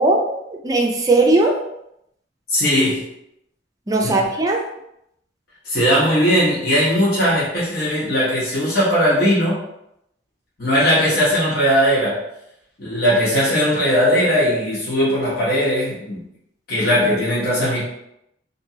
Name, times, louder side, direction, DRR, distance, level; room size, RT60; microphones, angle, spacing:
voice 1, 0.0-1.6 3.9-4.6, right 2 dB, 20° right, 0 dB, 0.5 m, -18 dB
voice 2, 2.5-3.1 4.0-4.2 5.6-9.6 10.6-12.2 12.8-16.2 16.7-17.8, equal, 60° left, -8 dB, 1.1 m, -18 dB
2.9 x 2.6 x 2.8 m, 0.79 s
head